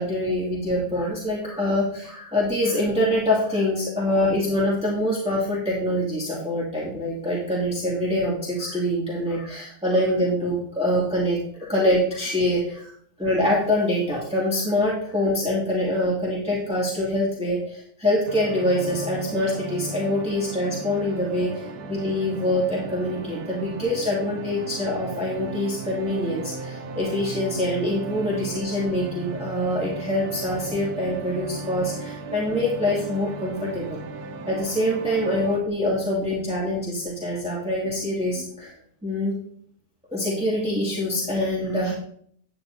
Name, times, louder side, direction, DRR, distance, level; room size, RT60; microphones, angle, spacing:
voice 1, 0.0-12.9 13.2-34.0 34.5-38.7 39.0-39.3 40.1-41.9, left 1 dB, 5° right, -6 dB, 2.1 m, -25 dB
sound 1, 18.3-35.6, right 3 dB, 85° right, 1.3 m, -36 dB
9.4 x 9.3 x 2.7 m, 0.63 s
omnidirectional pair, 1.6 m